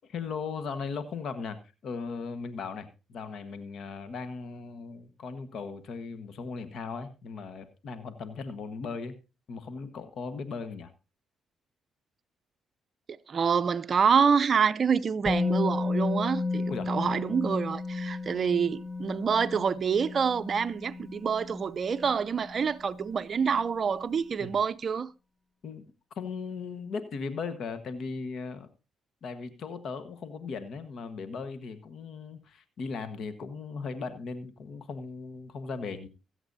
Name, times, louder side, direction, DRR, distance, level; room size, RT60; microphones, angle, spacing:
voice 1, 0.1-1.6 1.8-9.1 9.5-10.9 16.7-16.9 24.4-24.5 25.6-25.8 26.2-28.7 29.2-36.1, left 5 dB, 65° left, 1.3 m, -37 dB
voice 2, 13.1-25.1, right 6 dB, 45° right, 0.6 m, -27 dB
Musical instrument, 15.3-23.2 23.4-23.6, left 3 dB, 5° left, 0.9 m, -33 dB
24.0 x 8.1 x 2.7 m
cardioid pair, 90°, 0 cm